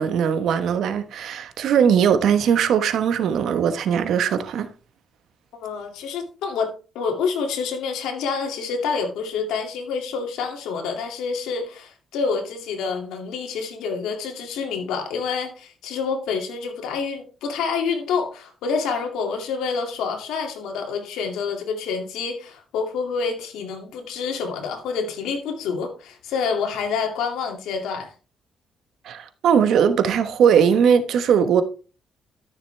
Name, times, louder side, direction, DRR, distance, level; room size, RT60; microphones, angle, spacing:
voice 1, 0.0-4.7 29.0-31.6, right 7 dB, 75° right, 1.1 m, -19 dB
voice 2, 5.6-28.1, left 5 dB, 90° left, 2.2 m, -27 dB
13.0 x 6.7 x 3.3 m
cardioid pair, 90°, 0 cm